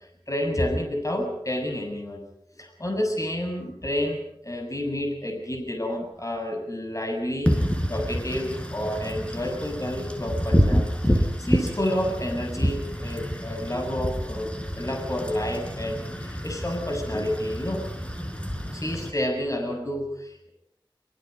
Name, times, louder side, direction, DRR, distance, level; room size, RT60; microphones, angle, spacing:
voice 1, 0.3-2.2 2.5-7.6 7.9-17.9 18.7-20.5, left 1 dB, 40° left, 3 dB, 7.0 m, -30 dB
Wind / Rain, 7.5-19.1, equal, 15° left, 5.8 m, -28 dB
26.0 x 25.0 x 5.3 m, 0.71 s
wide cardioid pair, 55°, 9 cm